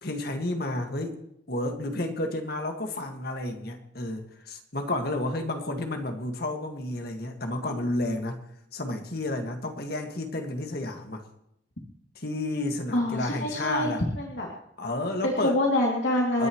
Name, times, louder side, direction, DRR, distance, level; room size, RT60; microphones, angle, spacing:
voice 1, 0.0-1.2 1.5-8.4 8.7-11.2 12.2-14.0 14.8-15.6 16.4-16.5, left 2 dB, 55° left, 4 dB, 1.9 m, -31 dB
voice 2, 12.9-14.5 15.2-16.5, left 1 dB, 80° left, -2 dB, 2.8 m, -26 dB
30.0 x 10.5 x 3.1 m, 0.80 s
head